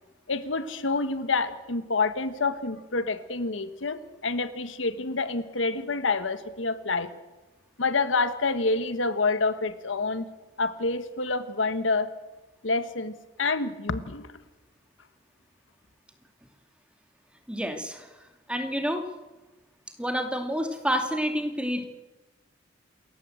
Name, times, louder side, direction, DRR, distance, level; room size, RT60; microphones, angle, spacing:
voice 1, 0.3-7.1 7.8-10.3 10.6-12.1 12.6-14.4, left 3 dB, 85° left, 11 dB, 1.4 m, -28 dB
voice 2, 17.5-18.1 18.5-19.1 20.0-21.8, equal, 5° right, 5 dB, 2.4 m, -28 dB
27.5 x 14.5 x 7.8 m, 1.1 s
head